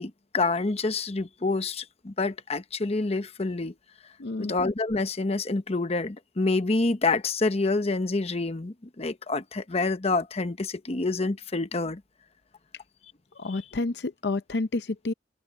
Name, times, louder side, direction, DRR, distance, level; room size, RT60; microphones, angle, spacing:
voice 1, 0.0-3.7 4.4-12.0, left 3 dB, 35° left, 0.9 m, -27 dB
voice 2, 4.2-4.5 13.3-15.1, left 2 dB, 65° left, 0.6 m, -30 dB
head